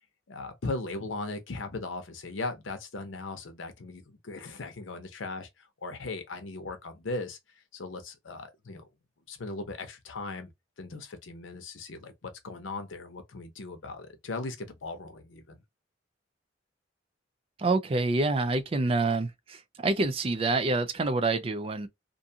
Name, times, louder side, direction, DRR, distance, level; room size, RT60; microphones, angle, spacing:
voice 1, 0.3-7.4 7.7-8.9 9.3-10.5 10.8-15.6, left 3 dB, 90° left, 0.7 m, -38 dB
voice 2, 17.6-21.9, right 3 dB, 30° right, 0.3 m, -27 dB
2.5 x 2.4 x 2.7 m
head